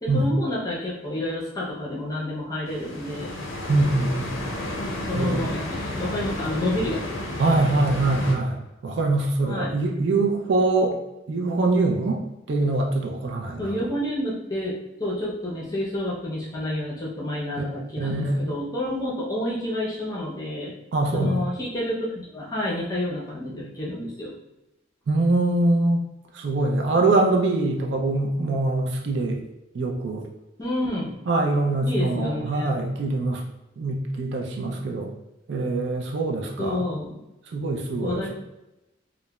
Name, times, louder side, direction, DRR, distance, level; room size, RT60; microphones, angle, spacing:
voice 1, 0.0-3.3 5.1-7.2 9.4-9.7 13.6-20.7 21.1-24.4 30.6-31.1 31.8-32.7 36.6-37.2 38.0-38.3, left 1 dB, 20° left, -5 dB, 0.6 m, -29 dB
sound 1, 2.7-8.4, left 1 dB, 90° left, 0.5 m, -32 dB
voice 2, 3.7-4.4 5.1-5.5 7.4-8.6 8.8-11.0 11.3-12.2 12.5-13.8 17.6-17.7 18.0-18.4 20.9-21.4 25.1-26.0 26.3-29.4 29.7-30.3 31.3-33.4 33.8-35.1 35.5-36.8 37.5-38.3, right 2 dB, 60° right, 1 dB, 0.4 m, -23 dB
3.0 x 2.1 x 2.2 m, 0.96 s
head